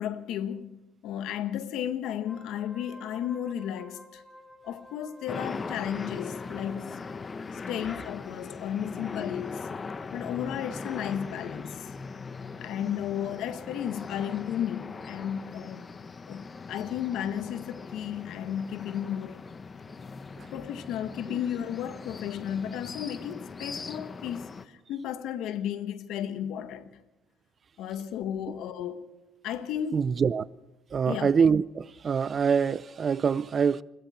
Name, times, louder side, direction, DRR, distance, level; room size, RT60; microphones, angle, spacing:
voice 1, 0.0-4.2 4.6-7.1 7.5-9.7 10.1-11.9 12.6-15.9 16.3-19.4 20.5-26.9 27.8-29.2 29.4-30.1 31.1-31.3, left 10 dB, 75° left, 1.5 m, -34 dB
Wind instrument woodwind instrument, 2.1-7.4, left 1 dB, 10° left, 7.1 m, -52 dB
sound 1, 5.3-24.6, left 4 dB, 35° left, 1.2 m, -40 dB
voice 2, 29.9-30.5 30.9-33.8, right 6 dB, 40° right, 0.6 m, -25 dB
28.5 x 22.0 x 4.4 m
supercardioid pair, 85°, 0 cm